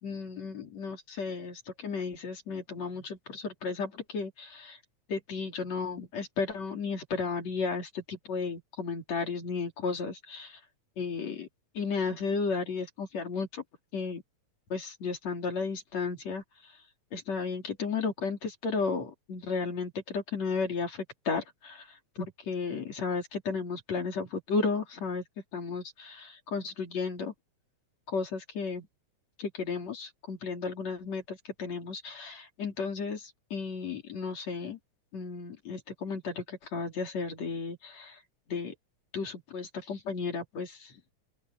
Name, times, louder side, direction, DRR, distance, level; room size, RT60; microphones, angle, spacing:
voice 1, 0.0-4.8 5.1-10.6 11.0-11.5 11.7-13.6 13.9-14.2 14.7-16.8 17.1-25.2 25.5-27.3 28.1-28.9 29.4-34.8 35.1-38.2 38.5-38.7 39.1-41.0, left 4 dB, 65° left, 4.6 m, -34 dB
open air
omnidirectional pair, 3.4 m